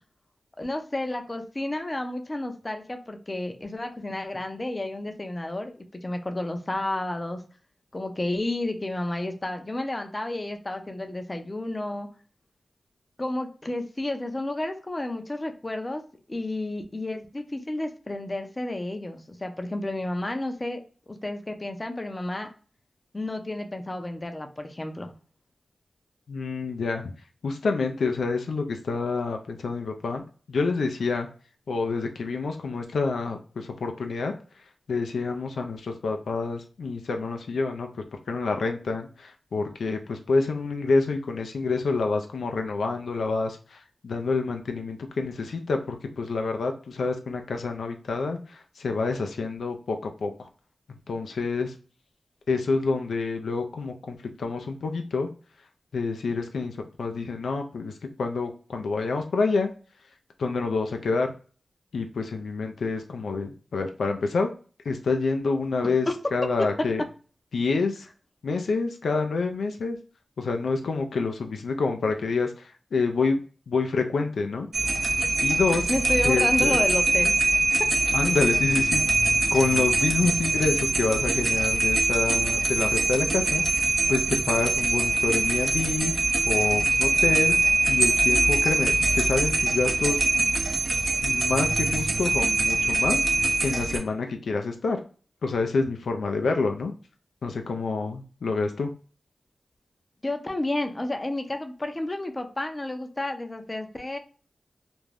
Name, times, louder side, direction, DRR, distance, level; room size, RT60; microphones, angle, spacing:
voice 1, 0.6-7.4 7.9-12.1 13.2-16.0 16.3-22.5 23.1-25.1 65.8-66.1 75.9-77.4 100.2-104.2, left 1 dB, 30° left, 5 dB, 0.5 m, -31 dB
voice 2, 26.3-27.1 27.4-31.3 31.7-34.3 34.9-37.9 38.3-50.5 51.1-51.7 52.5-55.3 55.9-57.9 58.2-59.7 60.4-61.3 61.9-64.5 64.9-67.0 67.5-68.1 68.4-70.0 70.4-73.4 73.7-74.7 75.4-75.9 76.2-76.8 78.1-86.1 86.5-87.6 87.9-90.2 91.2-93.2 93.6-95.0 95.4-96.9 97.4-98.9, left 4 dB, 85° left, 4 dB, 0.3 m, -27 dB
sound 1, 74.7-94.0, right 2 dB, 55° right, 0.6 m, -23 dB
2.5 x 2.2 x 3.2 m, 0.39 s
cardioid pair, 50°, 0 cm